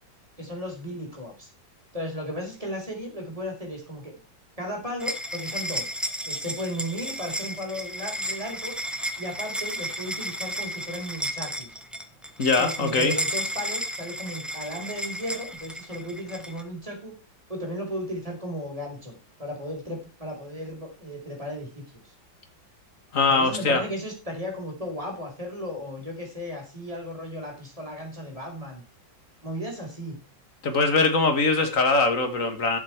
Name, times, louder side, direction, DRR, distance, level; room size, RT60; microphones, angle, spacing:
voice 1, 0.4-1.5 1.9-4.2 4.6-5.9 6.2-8.7 9.2-11.8 12.6-17.2 17.5-22.1 23.3-28.8 29.4-30.2, equal, 15° right, 4.6 m, -35 dB
sound 1, 5.0-16.6, equal, ahead, 0.9 m, -33 dB
voice 2, 12.4-13.1 23.1-23.8 30.6-32.8, left 3 dB, 45° left, 2.2 m, -22 dB
12.0 x 7.6 x 4.7 m
omnidirectional pair, 2.1 m